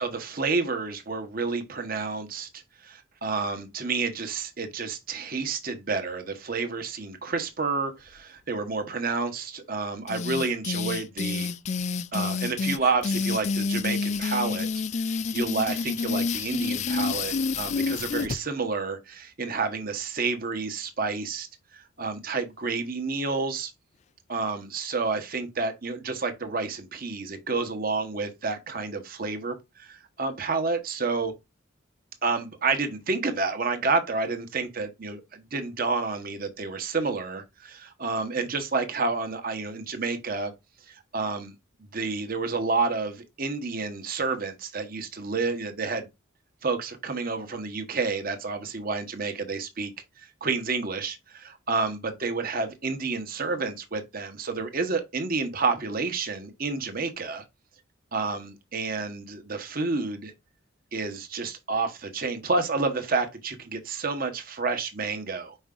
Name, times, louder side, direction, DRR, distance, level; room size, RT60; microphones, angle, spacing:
voice 1, 0.0-11.5 12.1-14.7 15.0-21.5 21.7-23.7 24.3-31.3 32.2-40.5 40.9-41.5 41.9-46.1 46.6-49.9 50.2-57.4 58.1-60.3 60.9-65.6, right 4 dB, 45° right, 1.1 m, -30 dB
sound 1, 10.1-18.4, left 4 dB, 35° left, 0.3 m, -28 dB
5.4 x 4.6 x 3.8 m
head